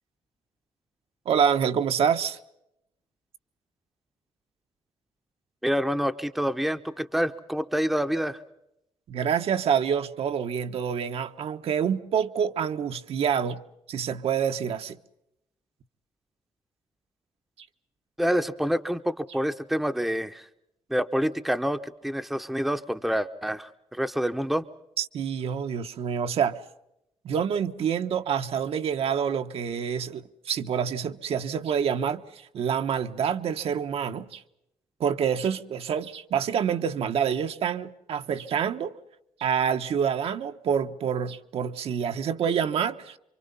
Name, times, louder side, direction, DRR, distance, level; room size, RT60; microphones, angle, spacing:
voice 1, 1.2-2.4 9.1-13.6 13.9-15.0 25.0-26.6 27.2-34.4 35.0-39.0 39.4-43.2, right 7 dB, 65° right, 1.2 m, -27 dB
voice 2, 5.6-8.4 18.2-20.5 20.9-24.6, equal, ahead, 0.8 m, -27 dB
27.5 x 25.0 x 5.5 m
wide cardioid pair, 150°, 11 cm